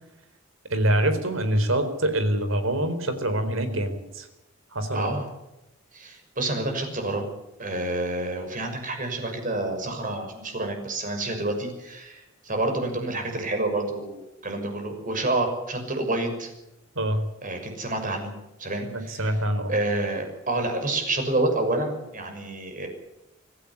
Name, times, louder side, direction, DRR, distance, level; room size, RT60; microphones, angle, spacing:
voice 1, 0.7-4.2 4.7-5.2 17.0-17.2 18.9-19.7, right 1 dB, 85° right, 10 dB, 4.3 m, -25 dB
voice 2, 4.9-5.3 5.9-7.3 7.6-16.5 17.4-18.3 18.6-19.3 19.7-22.9, right 2 dB, 40° right, 5 dB, 6.3 m, -28 dB
25.0 x 16.0 x 8.4 m, 0.94 s
head